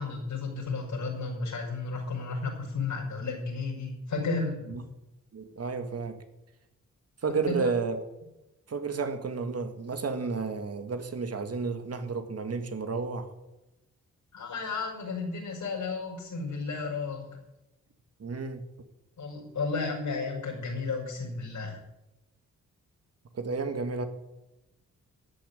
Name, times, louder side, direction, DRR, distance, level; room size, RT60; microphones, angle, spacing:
voice 1, 0.0-4.6 7.5-7.7 14.3-17.4 19.2-21.8, left 4 dB, 70° left, -2 dB, 5.8 m, -33 dB
voice 2, 5.3-6.2 7.2-8.1 8.7-13.3 18.2-18.7 23.3-24.1, right 4 dB, 50° right, 8 dB, 1.8 m, -32 dB
13.5 x 8.8 x 8.7 m, 0.95 s
cardioid pair, 95°, 31 cm